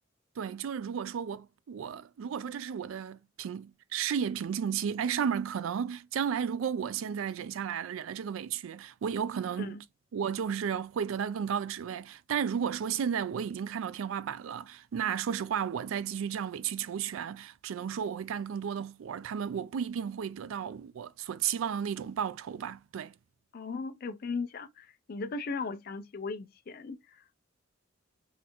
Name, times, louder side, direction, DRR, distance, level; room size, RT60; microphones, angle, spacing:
voice 1, 0.4-9.8 10.1-23.1, right 8 dB, 75° right, 0.3 m, -33 dB
voice 2, 23.5-27.4, left 4 dB, 45° left, 0.4 m, -37 dB
3.8 x 2.6 x 2.9 m
head